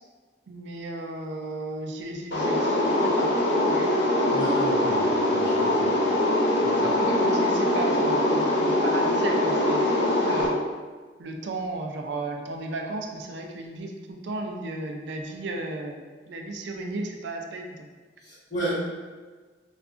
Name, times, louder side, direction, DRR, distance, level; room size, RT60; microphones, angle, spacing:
voice 1, 0.5-3.9 6.7-10.6 11.2-16.0 16.3-17.9, right 2 dB, 80° right, 2 dB, 0.4 m, -34 dB
sound 1, 2.3-10.5, left 1 dB, 70° left, 0.6 m, -23 dB
voice 2, 4.3-5.9 6.6-6.9 18.3-18.7, right 1 dB, 45° left, -10 dB, 1.5 m, -33 dB
4.2 x 2.3 x 2.4 m, 1.4 s
head